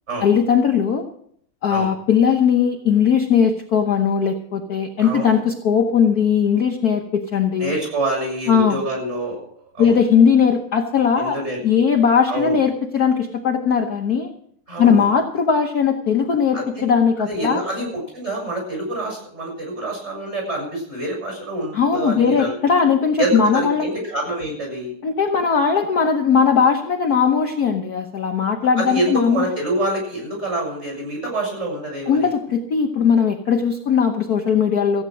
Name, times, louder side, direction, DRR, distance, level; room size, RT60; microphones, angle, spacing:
voice 1, 0.2-1.1 1.6-7.7 8.5-8.8 9.8-11.4 11.6-14.3 14.8-17.6 21.7-23.8 25.0-29.4 32.1-35.0, left 6 dB, 50° left, 3 dB, 1.3 m, -18 dB
voice 2, 5.0-5.4 7.6-9.4 9.7-10.0 11.1-11.6 12.3-12.6 14.7-15.1 16.5-16.6 17.3-22.5 23.2-24.9 28.8-32.3, right 1 dB, 30° right, -1 dB, 7.1 m, -26 dB
15.5 x 9.0 x 6.3 m, 0.64 s
omnidirectional pair, 2.4 m